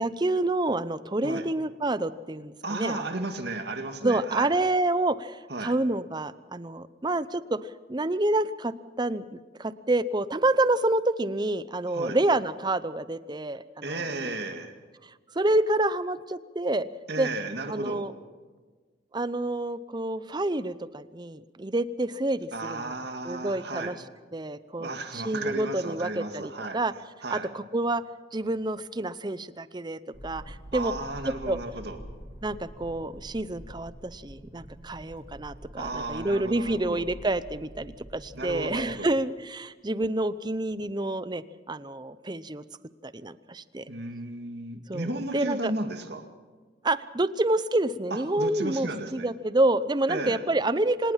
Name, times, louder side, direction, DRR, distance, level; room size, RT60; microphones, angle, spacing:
voice 1, 0.0-3.2 4.0-14.3 15.0-16.9 17.2-17.3 17.7-18.1 19.1-22.9 23.2-24.0 24.3-26.9 27.3-28.0 28.3-30.9 31.5-31.6 32.4-42.6 43.0-43.8 44.9-45.7 46.8-51.1, right 2 dB, 20° right, 15 dB, 0.7 m, -28 dB
voice 2, 2.6-4.5 5.5-5.7 11.9-12.2 13.8-14.8 17.1-18.1 22.5-24.0 24.8-26.8 27.2-27.5 30.7-32.0 35.7-37.0 38.3-39.1 43.9-46.3 48.1-49.3 50.1-50.4, right 2 dB, 60° right, 6 dB, 2.1 m, -34 dB
sound 1, 30.1-38.8, equal, 10° left, 7.9 m, -46 dB
26.0 x 18.5 x 5.8 m, 1.4 s
head